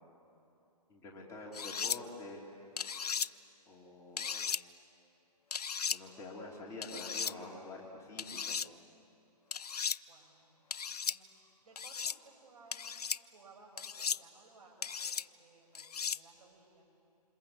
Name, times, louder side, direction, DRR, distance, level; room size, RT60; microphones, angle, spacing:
voice 1, 0.9-2.4 3.7-4.5 5.9-8.6, left 2 dB, 15° left, -2 dB, 3.3 m, -47 dB
sound 1, 1.5-2.0 2.8-3.3 4.2-4.6 5.5-6.0 6.8-7.3 8.2-8.7 9.5-10.0 10.7-11.2 11.8-12.2 12.7-13.2 13.8-14.2 14.8-15.2 15.7-16.2, left 6 dB, 70° left, 0.7 m, -36 dB
voice 2, 6.1-6.8 10.1-12.9 13.2-16.8, right 3 dB, 60° right, 0 dB, 8.0 m, -61 dB
28.5 x 27.5 x 7.3 m, 2.7 s
figure-of-eight pair, 135°, 21 cm